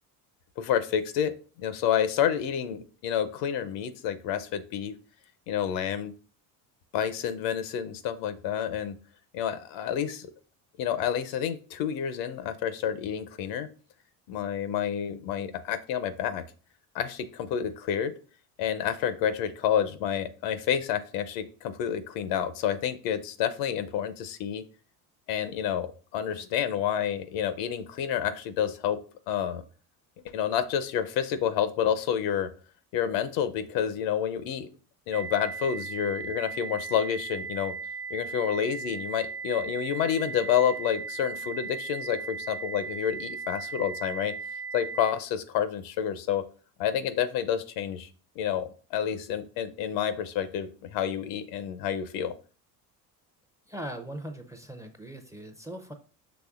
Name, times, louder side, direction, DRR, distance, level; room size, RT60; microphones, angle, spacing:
voice 1, 0.6-1.3 1.6-4.9 5.5-6.1 6.9-9.0 9.3-10.3 10.8-13.7 14.3-16.4 16.9-18.1 18.6-24.6 25.3-25.9 26.1-29.0 29.3-29.6 30.3-32.5 32.9-34.7 35.1-37.7 38.1-44.3 44.7-46.4 46.8-48.1 48.4-52.3, left 9 dB, 75° left, 12 dB, 0.7 m, -29 dB
sound 1, 35.1-45.1, right 5 dB, 90° right, 0.6 m, -37 dB
voice 2, 53.7-55.9, right 1 dB, 5° right, 7 dB, 0.5 m, -40 dB
6.0 x 3.1 x 2.4 m, 0.38 s
supercardioid pair, 85°, 44 cm